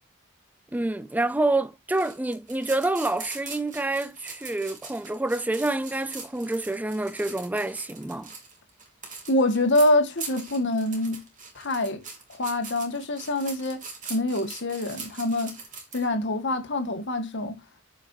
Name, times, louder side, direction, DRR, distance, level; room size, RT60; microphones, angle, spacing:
voice 1, 0.7-8.3, right 2 dB, 10° right, 0.4 m, -27 dB
sound 1, 1.9-16.1, right 4 dB, 40° right, 2.9 m, -41 dB
voice 2, 9.3-11.2 11.5-12.0 12.3-13.8 14.1-15.6 15.9-17.5, left 1 dB, 60° left, 1.6 m, -25 dB
14.0 x 5.7 x 2.7 m
head